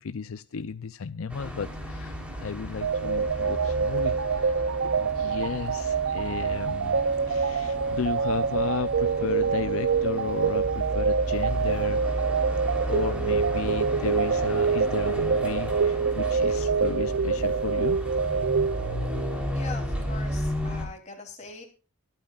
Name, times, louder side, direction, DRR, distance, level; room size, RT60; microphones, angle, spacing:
voice 1, 0.0-7.0 7.3-12.3 12.9-18.0, left 5 dB, 70° left, 13 dB, 0.5 m, -34 dB
sound 1, 1.3-20.9, equal, 5° right, 3.5 m, -34 dB
sound 2, 2.8-19.4, right 5 dB, 65° right, 0.5 m, -26 dB
voice 2, 19.5-21.6, left 3 dB, 30° left, 3 dB, 3.2 m, -42 dB
23.5 x 9.0 x 2.4 m, 0.34 s
head